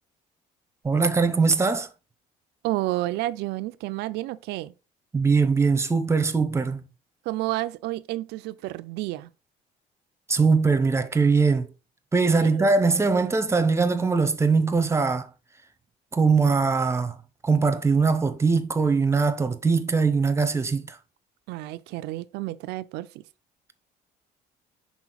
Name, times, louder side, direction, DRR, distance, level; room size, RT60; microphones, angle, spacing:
voice 1, 0.8-1.9 5.1-6.8 10.3-11.7 12.1-15.3 16.1-17.1 17.4-21.0, right 4 dB, 15° right, 0.7 m, -21 dB
voice 2, 2.6-4.7 7.3-9.3 12.4-12.7 21.5-23.2, right 17 dB, 90° right, 0.5 m, -30 dB
6.0 x 4.1 x 3.9 m
cardioid pair, 110°, 17 cm